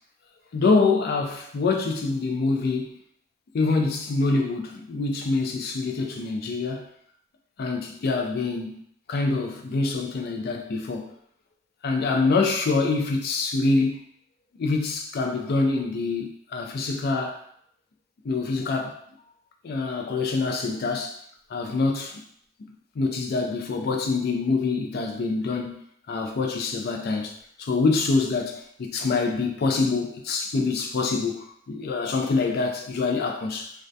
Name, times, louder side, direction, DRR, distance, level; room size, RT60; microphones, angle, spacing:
voice 1, 0.5-3.0 3.5-6.9 7.6-8.8 9.1-11.1 11.8-14.0 14.6-17.4 18.2-18.9 19.6-21.2 21.5-22.2 23.0-27.3 27.6-33.7, left 3 dB, 55° left, 3 dB, 0.4 m, -25 dB
2.2 x 2.2 x 2.6 m, 0.67 s
head